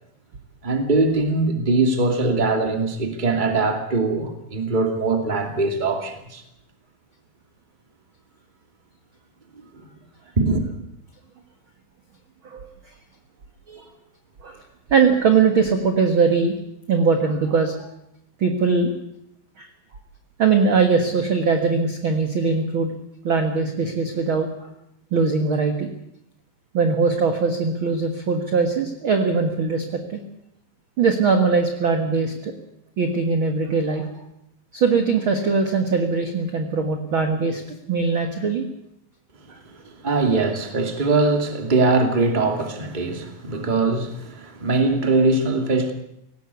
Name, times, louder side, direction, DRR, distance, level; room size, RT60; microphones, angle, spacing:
voice 1, 0.6-6.4 10.4-10.6 40.0-45.9, right 3 dB, 15° right, 5 dB, 2.0 m, -21 dB
voice 2, 14.9-16.5 16.9-17.9 18.4-18.9 19.6-19.7 20.4-22.9 23.2-24.7 25.1-25.9 26.7-30.2 31.0-32.5 33.0-34.1 34.7-37.6 37.9-38.7, right 5 dB, 45° right, 5 dB, 1.7 m, -21 dB
18.5 x 17.5 x 8.3 m, 0.78 s
omnidirectional pair, 4.3 m